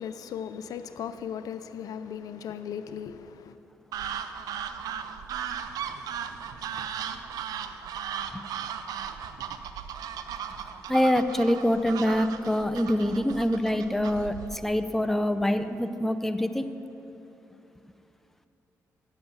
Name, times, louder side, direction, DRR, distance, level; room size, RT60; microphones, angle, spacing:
voice 1, 0.0-3.6, left 8 dB, 75° left, 11 dB, 0.4 m, -37 dB
sound 1, 3.9-14.6, right 8 dB, 80° right, 0.5 m, -37 dB
voice 2, 10.9-16.7, equal, 5° left, 9 dB, 0.6 m, -25 dB
9.0 x 7.8 x 7.1 m, 2.8 s
supercardioid pair, 65°, 6 cm